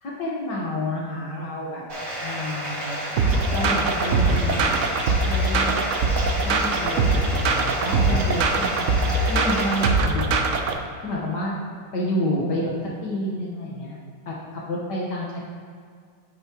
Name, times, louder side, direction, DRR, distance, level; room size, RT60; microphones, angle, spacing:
voice 1, 0.0-1.8 2.2-3.0 3.5-4.8 5.3-5.8 6.4-8.9 9.3-10.6 11.0-11.5 11.9-12.7 13.0-14.0 14.3-15.4, left 1 dB, 65° left, -4 dB, 1.8 m, -29 dB
Bathtub (filling or washing), 1.9-9.9, equal, 45° right, 2.4 m, -30 dB
sound 1, 3.2-10.8, right 3 dB, 65° right, 0.7 m, -22 dB
9.5 x 8.5 x 3.0 m, 2.1 s
omnidirectional pair, 2.0 m